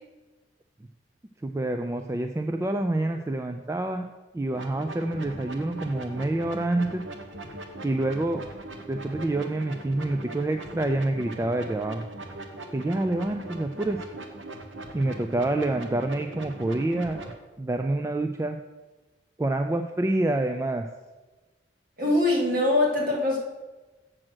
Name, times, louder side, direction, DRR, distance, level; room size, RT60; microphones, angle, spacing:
voice 1, 1.4-4.1 4.3-7.0 7.8-8.4 8.9-12.0 12.7-14.1 14.9-17.2 17.6-18.6 19.4-20.9, right 2 dB, 15° right, 6 dB, 0.3 m, -27 dB
sound 1, 4.5-17.3, right 2 dB, 75° right, 1.0 m, -40 dB
voice 2, 22.0-23.4, left 2 dB, 50° right, -3 dB, 2.4 m, -23 dB
7.6 x 6.2 x 6.2 m, 1.2 s
head